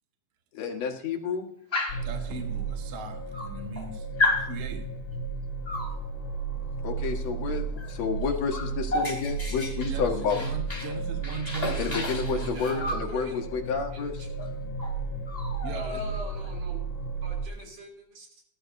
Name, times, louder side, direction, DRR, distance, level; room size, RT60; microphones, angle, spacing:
voice 1, 0.5-1.4 6.8-10.4 11.8-14.1, left 6 dB, 60° left, 3 dB, 2.6 m, -30 dB
Dog, 1.7-2.1 3.0-3.1 3.3-3.9 4.2-4.5 5.7-6.0 7.8-7.9 8.2-10.9 11.2-13.1 14.4-14.5 14.8-15.0 15.3-16.5, left 2 dB, 10° left, 3.0 m, -31 dB
sound 1, 1.9-17.5, right 4 dB, 30° left, 2.8 m, -34 dB
voice 2, 2.0-4.1 4.3-4.9 9.8-12.7 15.6-16.0, right 4 dB, 55° right, 3 dB, 2.2 m, -39 dB
voice 3, 12.5-13.4 13.9-14.3 15.7-16.8 17.2-18.4, right 3 dB, 85° right, 1 dB, 4.8 m, -44 dB
19.0 x 12.0 x 2.7 m, 0.68 s
omnidirectional pair, 3.6 m